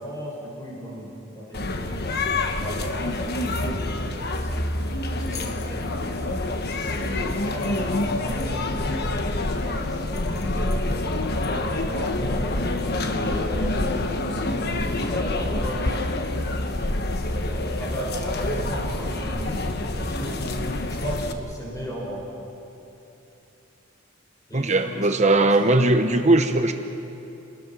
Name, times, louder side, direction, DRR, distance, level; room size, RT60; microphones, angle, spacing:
voice 1, 0.0-2.3 2.6-3.3 3.6-6.4 6.8-9.1 9.4-10.9 11.4-12.7 13.1-16.0 17.3-19.6 20.0-20.4 20.9-22.2 24.5-25.1 25.4-25.8, equal, 20° left, -4 dB, 6.4 m, -36 dB
sound 1, 1.5-21.3, left 2 dB, 55° left, 1.3 m, -27 dB
voice 2, 24.5-26.7, right 2 dB, 35° right, 6 dB, 1.0 m, -19 dB
29.0 x 20.0 x 6.2 m, 3.0 s
head